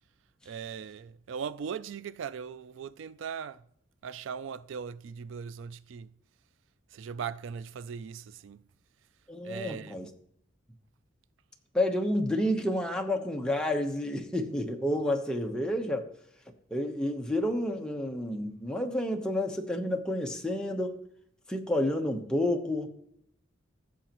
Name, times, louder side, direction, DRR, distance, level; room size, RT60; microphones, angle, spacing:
voice 1, 0.5-3.6 4.0-6.1 6.9-8.6 9.4-10.0, right 7 dB, 70° right, 0.4 m, -39 dB
voice 2, 9.3-10.1 11.7-16.1 16.7-21.0 21.5-22.9, left 1 dB, 5° left, 0.9 m, -30 dB
15.5 x 7.1 x 3.0 m
head